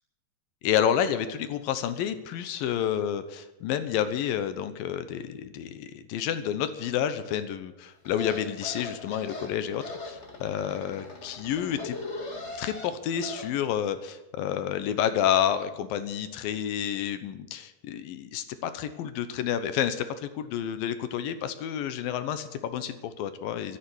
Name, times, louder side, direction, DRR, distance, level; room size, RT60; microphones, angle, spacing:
voice 1, 0.6-12.0 12.6-23.8, left 9 dB, 80° left, 11 dB, 2.7 m, -29 dB
sound 1, 8.0-13.5, left 3 dB, 30° left, 1.5 m, -40 dB
12.0 x 11.5 x 9.7 m, 0.98 s
omnidirectional pair, 4.2 m